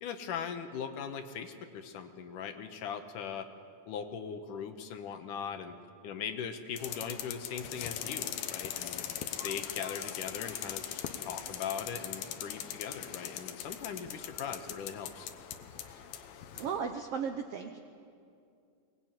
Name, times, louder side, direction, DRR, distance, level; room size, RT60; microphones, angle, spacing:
voice 1, 0.0-3.5 3.9-5.7 6.0-9.0 9.4-15.3, left 7 dB, 70° left, 7 dB, 2.5 m, -40 dB
sound 1, 6.8-16.8, left 10 dB, 85° left, 2.9 m, -40 dB
voice 2, 16.5-17.8, right 6 dB, 85° right, 6 dB, 1.3 m, -36 dB
23.0 x 19.5 x 9.1 m, 2.4 s
omnidirectional pair, 4.1 m